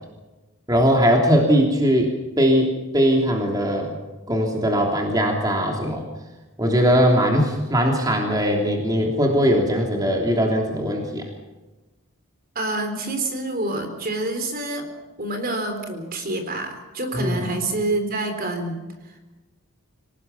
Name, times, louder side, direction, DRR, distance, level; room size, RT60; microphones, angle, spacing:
voice 1, 0.7-2.1 2.4-3.9 4.3-6.0 6.6-11.3 17.1-17.4, equal, 15° right, 0 dB, 3.2 m, -20 dB
voice 2, 12.6-14.9 15.2-19.2, right 2 dB, 40° right, 6 dB, 3.9 m, -27 dB
26.0 x 18.5 x 7.1 m, 1.1 s
head